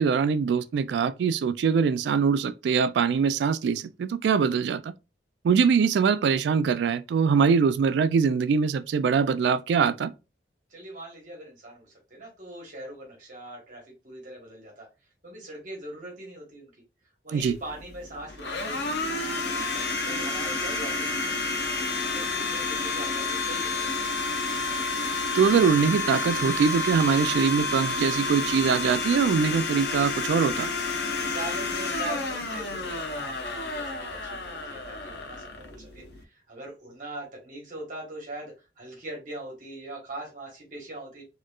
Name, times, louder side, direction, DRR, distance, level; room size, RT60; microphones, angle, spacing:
voice 1, 0.0-4.9 5.4-10.1 17.3-17.6 25.3-30.7, right 6 dB, 70° right, 0.3 m, -23 dB
voice 2, 10.7-16.7 17.2-21.5 22.0-24.0 31.2-41.2, right 2 dB, 45° right, 1.3 m, -41 dB
Domestic sounds home sounds, 17.4-36.2, left 3 dB, 65° left, 0.7 m, -30 dB
4.2 x 3.0 x 2.3 m
head